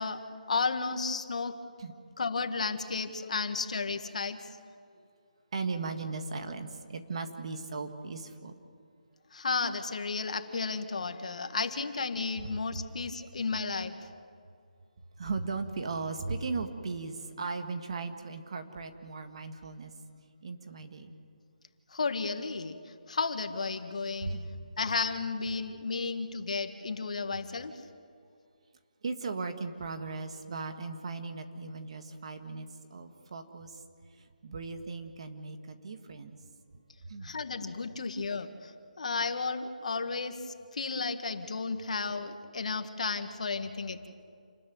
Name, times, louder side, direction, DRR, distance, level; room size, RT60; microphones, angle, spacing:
voice 1, 0.0-1.6 2.2-4.4 9.3-14.0 21.9-22.8 23.1-24.3 24.8-27.8 37.2-44.1, left 4 dB, 55° left, 8 dB, 1.8 m, -33 dB
voice 2, 5.5-8.5 12.4-12.5 15.2-19.9 20.4-21.2 24.2-24.5 29.0-33.8 34.4-36.3 37.0-37.3, right 4 dB, 40° right, 7 dB, 1.7 m, -37 dB
28.5 x 13.5 x 9.3 m, 2.3 s
hypercardioid pair, 170°, 5 cm